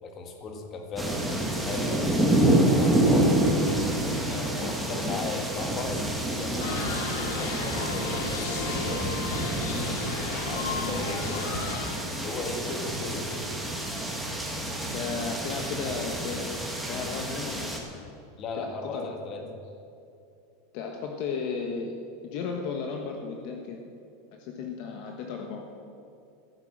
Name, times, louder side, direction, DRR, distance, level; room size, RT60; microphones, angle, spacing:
voice 1, 0.0-2.2 2.7-3.4 4.3-6.0 6.3-9.1 9.7-11.5 12.1-13.5 18.4-19.4, left 3 dB, 25° left, 3 dB, 1.8 m, -37 dB
sound 1, 1.0-17.8, right 1 dB, ahead, 1.7 m, -28 dB
voice 2, 5.0-5.4 14.9-17.8 18.6-19.1 19.4-19.6 20.7-22.0 22.2-23.8 24.3-25.6, left 5 dB, 45° left, 2 dB, 1.3 m, -35 dB
sound 2, 6.6-12.0, left 4 dB, 85° left, 2.6 m, -33 dB
14.5 x 11.5 x 7.4 m, 2.7 s
supercardioid pair, 175°, 0 cm